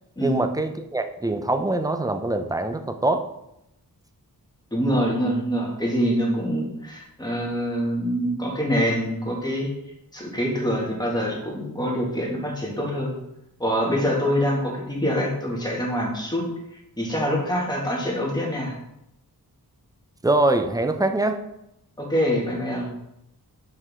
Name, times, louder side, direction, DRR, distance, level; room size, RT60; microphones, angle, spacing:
voice 1, 0.2-3.2 20.2-21.4, right 2 dB, 10° right, 7 dB, 0.6 m, -23 dB
voice 2, 4.7-9.7 10.1-13.1 13.6-16.4 17.0-18.8 22.0-22.9, equal, 10° left, -3 dB, 2.1 m, -25 dB
5.7 x 5.4 x 3.7 m, 0.83 s
wide cardioid pair, 80°, 37 cm